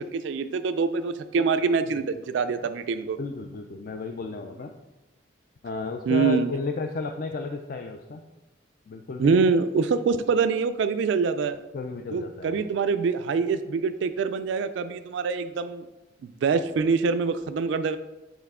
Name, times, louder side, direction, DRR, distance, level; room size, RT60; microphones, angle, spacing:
voice 1, 0.0-3.2 6.1-6.5 9.2-11.6 12.1-15.9 16.4-18.0, right 5 dB, 70° right, 10 dB, 0.3 m, -25 dB
voice 2, 3.2-4.7 5.6-8.2 8.9-9.4 11.7-12.6, left 3 dB, 50° left, 5 dB, 0.4 m, -33 dB
7.9 x 4.0 x 3.6 m, 1.0 s
head